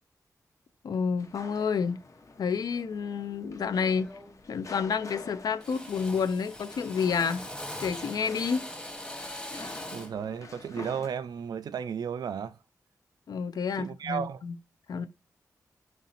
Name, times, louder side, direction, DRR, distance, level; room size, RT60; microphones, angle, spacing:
voice 1, 0.8-2.0 2.4-4.1 4.5-7.5 7.8-8.6 13.3-14.6 14.9-15.1, left 6 dB, 75° left, 0.4 m, -29 dB
sound 1, 1.2-11.1, left 3 dB, 50° left, 0.8 m, -48 dB
Drill, 3.3-3.5 3.9-4.4 4.7-5.3 5.6-10.2, left 1 dB, 10° left, 1.0 m, -42 dB
voice 2, 9.9-12.6 13.8-14.4, right 7 dB, 80° right, 0.4 m, -34 dB
3.1 x 2.7 x 4.0 m
cardioid pair, 50°, 7 cm